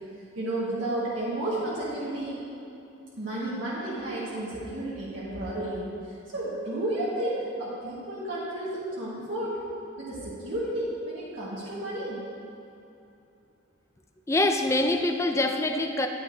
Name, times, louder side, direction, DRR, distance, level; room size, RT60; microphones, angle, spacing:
voice 1, 0.3-2.4 3.2-5.9 6.3-9.6 10.0-12.2, right 1 dB, 65° right, -9 dB, 1.7 m, -32 dB
voice 2, 14.3-16.1, left 2 dB, 15° left, 5 dB, 0.4 m, -24 dB
9.8 x 9.5 x 2.7 m, 2.8 s
head